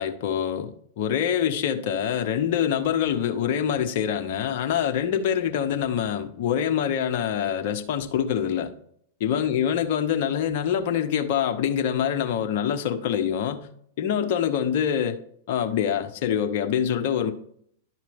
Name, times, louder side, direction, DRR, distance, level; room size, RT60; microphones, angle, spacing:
voice 1, 0.0-8.7 9.2-13.7 14.0-15.2 15.5-17.3, left 9 dB, 55° left, 1.1 m, -25 dB
11.5 x 4.6 x 3.6 m
hypercardioid pair, 105°, 0 cm